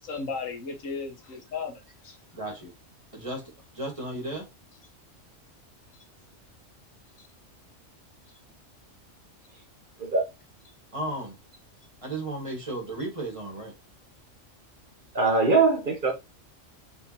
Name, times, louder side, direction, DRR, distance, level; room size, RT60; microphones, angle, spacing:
voice 1, 0.0-2.2 7.2-7.3, left 4 dB, 90° left, 1.6 m, -35 dB
voice 2, 2.3-2.7 3.1-3.4 3.7-4.4 10.9-11.3 12.0-13.7, right 1 dB, 25° right, 1.5 m, -34 dB
voice 3, 15.1-16.1, right 3 dB, 45° right, 0.9 m, -22 dB
4.5 x 3.5 x 2.8 m
omnidirectional pair, 1.3 m